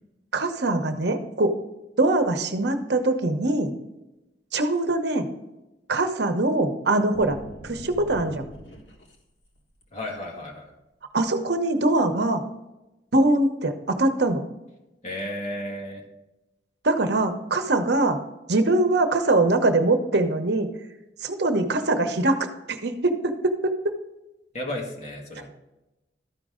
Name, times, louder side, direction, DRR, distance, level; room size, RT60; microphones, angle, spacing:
voice 1, 0.3-1.5 2.0-3.7 4.5-5.3 5.9-8.5 11.1-12.4 13.1-14.4 16.8-18.2 18.5-20.7 21.2-23.7, right 2 dB, 65° right, 7 dB, 0.9 m, -23 dB
sound 1, 7.1-9.2 9.6-10.0, equal, 80° left, 1.5 m, -42 dB
voice 2, 9.9-10.7 15.0-16.0 24.5-25.5, left 1 dB, 40° left, 0 dB, 2.0 m, -33 dB
13.0 x 5.2 x 3.7 m, 0.99 s
head